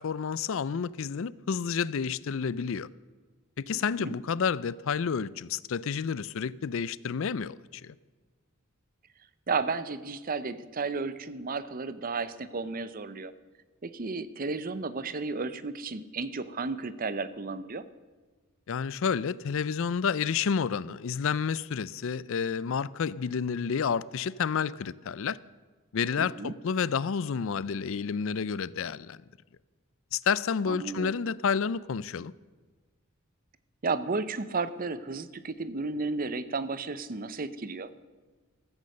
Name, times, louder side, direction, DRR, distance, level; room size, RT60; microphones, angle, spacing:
voice 1, 0.0-2.9 3.6-7.9 18.7-25.4 25.9-29.2 30.1-32.3, left 6 dB, 65° left, 0.4 m, -30 dB
voice 2, 3.7-4.1 9.5-13.3 13.8-17.8 26.2-26.5 30.7-31.2 33.8-37.9, right 4 dB, 40° right, 0.7 m, -33 dB
15.0 x 13.5 x 6.6 m
head